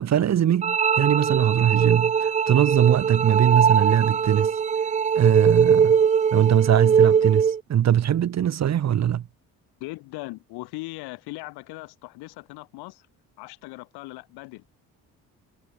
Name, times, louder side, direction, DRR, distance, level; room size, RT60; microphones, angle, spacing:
voice 1, 0.0-4.5 5.2-6.0 6.3-9.2, right 10 dB, 45° right, 0.9 m, -21 dB
sound 1, 0.6-7.6, right 7 dB, 20° right, 0.3 m, -21 dB
voice 2, 9.8-13.1 13.4-14.6, left 22 dB, 90° left, 4.4 m, -39 dB
supercardioid pair, 75°, 38 cm